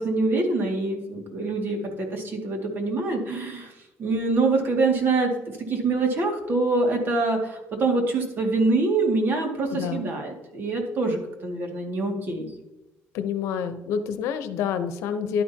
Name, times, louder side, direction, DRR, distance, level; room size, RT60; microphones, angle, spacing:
voice 1, 0.0-3.7 4.0-12.5, right 3 dB, 45° right, 2 dB, 2.2 m, -25 dB
voice 2, 9.7-10.1 13.1-15.4, left 7 dB, 85° left, 10 dB, 0.8 m, -28 dB
11.5 x 9.7 x 2.9 m, 0.98 s
cardioid pair, 125°, 5 cm